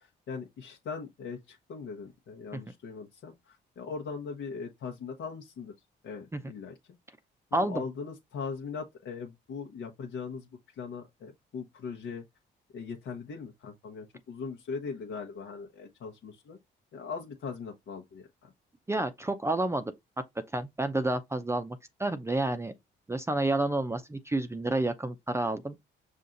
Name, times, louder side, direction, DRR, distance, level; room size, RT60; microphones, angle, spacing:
voice 1, 0.0-5.7 6.0-6.7 7.5-10.5 10.8-12.2 12.7-16.6 16.9-18.5, left 5 dB, 70° left, 0.9 m, -40 dB
voice 2, 7.5-7.8 18.9-19.9 20.5-22.7 23.1-25.8, right 2 dB, 15° right, 0.5 m, -30 dB
5.5 x 2.5 x 3.8 m
cardioid pair, 90°, 20 cm